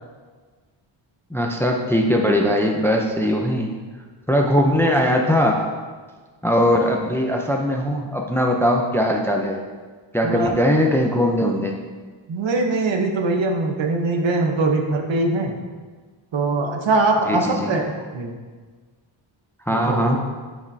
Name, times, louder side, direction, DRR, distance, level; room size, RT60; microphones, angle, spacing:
voice 1, 1.3-3.7 4.3-5.6 6.4-9.6 10.1-11.8 17.3-17.7 19.7-20.2, equal, 5° left, 1 dB, 0.5 m, -20 dB
voice 2, 12.3-15.5 16.3-18.3 19.7-20.2, right 2 dB, 70° right, 3 dB, 1.0 m, -22 dB
10.0 x 5.2 x 2.7 m, 1.5 s
wide cardioid pair, 130°, 47 cm